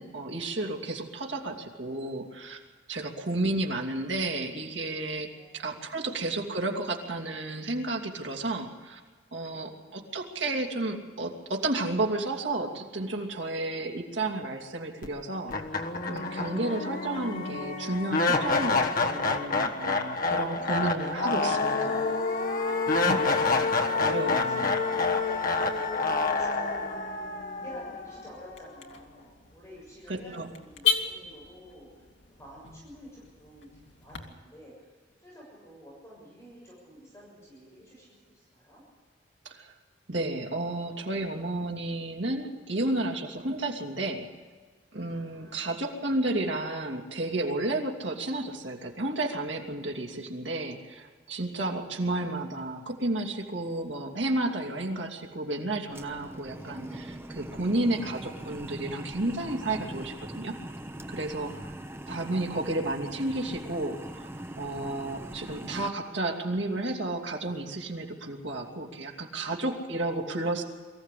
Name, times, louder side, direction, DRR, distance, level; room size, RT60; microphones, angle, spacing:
voice 1, 0.0-2.6 2.9-9.0 9.3-15.5 16.1-22.0 23.0-23.3 24.0-24.8 30.1-30.5 39.4-39.7 40.1-44.3 44.9-60.6 61.1-61.7 62.1-64.3 64.6-70.6, right 2 dB, 80° right, 1 dB, 2.8 m, -32 dB
voice 2, 3.0-3.6 5.3-6.2 7.4-7.7 9.4-10.1 19.5-23.5 23.9-24.7 25.3-26.9 27.4-31.9 32.3-34.9 35.2-38.8 45.0-45.8 51.3-51.5 53.4-53.7 61.5-62.2 69.2-69.8, equal, 15° left, -5 dB, 7.1 m, -52 dB
sound 1, 15.0-15.1 15.5-28.6, left 3 dB, 50° left, 1.5 m, -28 dB
Car / Alarm, 25.0-34.2, left 8 dB, 75° left, 2.3 m, -37 dB
sound 2, 55.9-65.9, right 1 dB, 15° right, 0.9 m, -41 dB
23.5 x 15.0 x 8.5 m, 1.4 s
head